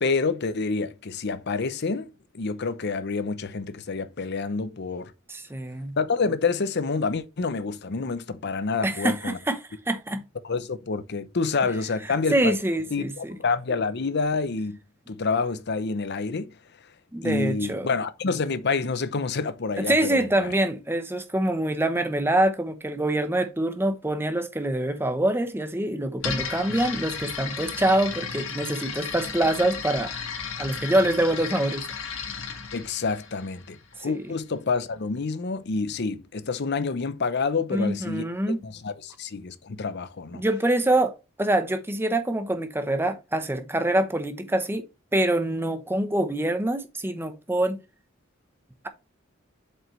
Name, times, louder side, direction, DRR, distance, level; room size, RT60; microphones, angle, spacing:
voice 1, 0.0-5.1 6.0-9.4 10.4-12.6 12.9-14.8 15.1-16.5 17.2-20.5 32.7-38.2 38.6-40.4, left 4 dB, 55° left, 0.7 m, -28 dB
voice 2, 5.3-6.0 8.8-9.6 9.9-10.2 12.3-13.4 17.1-17.9 19.8-30.1 30.6-31.8 34.0-34.2 37.7-38.6 40.3-44.8 45.1-47.8, right 1 dB, 10° right, 0.9 m, -25 dB
sound 1, 26.2-34.0, left 6 dB, 80° left, 1.5 m, -34 dB
7.5 x 5.5 x 3.2 m
head